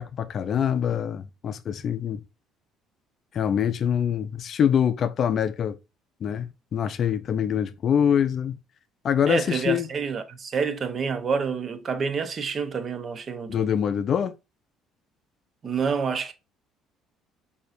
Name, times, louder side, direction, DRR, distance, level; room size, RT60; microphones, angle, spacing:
voice 1, 0.0-2.2 3.3-5.8 6.2-8.6 9.0-9.9 13.5-14.3, left 8 dB, 50° left, 0.4 m, -24 dB
voice 2, 9.3-13.7 15.6-16.3, right 5 dB, 40° right, 0.7 m, -28 dB
6.6 x 2.8 x 2.5 m
supercardioid pair, 85°, 0 cm